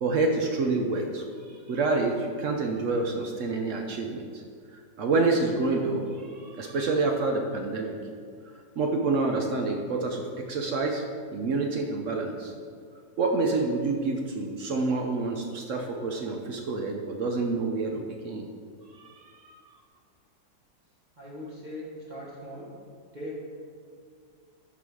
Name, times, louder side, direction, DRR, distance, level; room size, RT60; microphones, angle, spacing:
voice 1, 0.0-1.2 1.7-4.4 4.7-8.0 8.8-11.0 11.3-12.5 13.2-18.5 19.0-19.6, right 3 dB, 65° right, 3 dB, 0.8 m, -28 dB
voice 2, 21.2-22.8 23.1-23.3, left 1 dB, 30° right, -6 dB, 1.1 m, -40 dB
11.5 x 4.0 x 4.7 m, 2.1 s
omnidirectional pair, 2.0 m